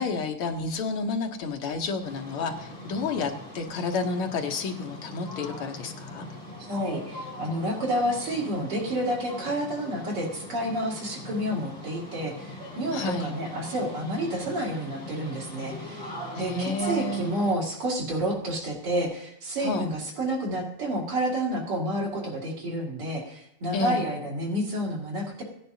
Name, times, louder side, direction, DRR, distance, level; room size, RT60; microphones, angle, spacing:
voice 1, 0.0-6.3 12.9-13.4 16.3-17.2 19.6-19.9 23.7-24.0, left 3 dB, 80° left, 4 dB, 1.9 m, -30 dB
sound 1, 2.0-17.5, left 1 dB, 35° left, 4.1 m, -41 dB
voice 2, 6.7-25.4, right 1 dB, 90° right, -4 dB, 3.5 m, -29 dB
17.5 x 9.9 x 2.8 m, 0.79 s
omnidirectional pair, 2.4 m